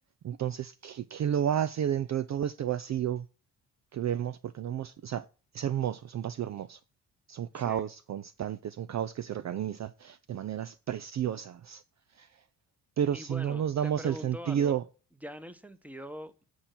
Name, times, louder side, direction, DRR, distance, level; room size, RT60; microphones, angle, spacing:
voice 1, 0.2-3.3 3.9-5.3 5.5-6.8 7.3-11.8 12.1-12.3 13.0-14.8, right 9 dB, 40° right, 0.5 m, -31 dB
voice 2, 7.5-7.8 13.1-14.8 15.2-16.4, equal, 5° right, 1.2 m, -43 dB
8.7 x 4.5 x 7.4 m
hypercardioid pair, 50°, 42 cm